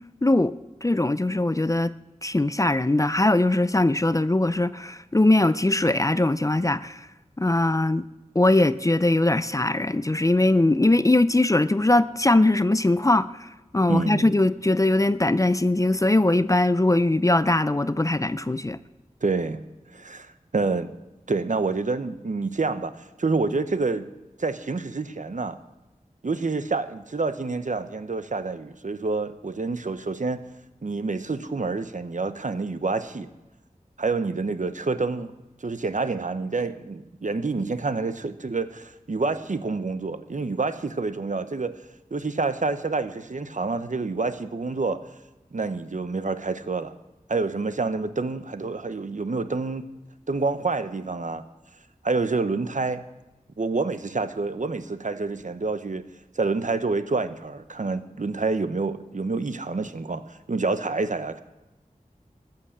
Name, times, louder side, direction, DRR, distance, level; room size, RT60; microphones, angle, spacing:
voice 1, 0.2-0.5 0.8-1.9 2.2-7.0 7.4-8.0 8.4-13.5 13.7-18.8, left 2 dB, 25° left, 0.5 m, -21 dB
voice 2, 13.9-14.3 19.2-19.6 19.9-20.9 21.3-24.1 24.4-25.6 26.2-30.4 30.8-33.3 34.0-35.3 35.6-41.7 42.1-45.0 45.5-46.9 47.3-49.8 50.3-51.4 52.0-53.0 53.6-56.0 56.3-61.4, right 3 dB, 60° right, 0.9 m, -28 dB
15.0 x 8.8 x 7.3 m
wide cardioid pair, 55°, 14 cm